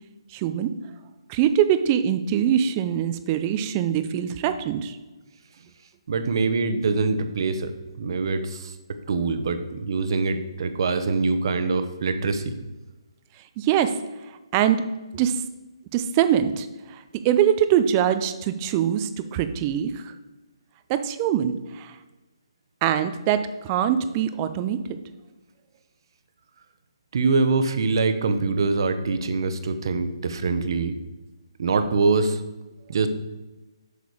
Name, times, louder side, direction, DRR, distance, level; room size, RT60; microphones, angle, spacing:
voice 1, 0.3-0.7 1.3-5.0 13.6-14.0 14.5-14.9 15.1-15.4 15.9-20.1 20.9-22.0 22.8-25.0, right 10 dB, 25° right, 10 dB, 0.5 m, -23 dB
voice 2, 6.1-8.7 9.1-12.6 27.1-31.0 31.6-32.4 32.9-33.1, right 4 dB, 55° right, 9 dB, 1.0 m, -24 dB
8.1 x 6.7 x 4.8 m, 1.1 s
figure-of-eight pair, 145°, 3 cm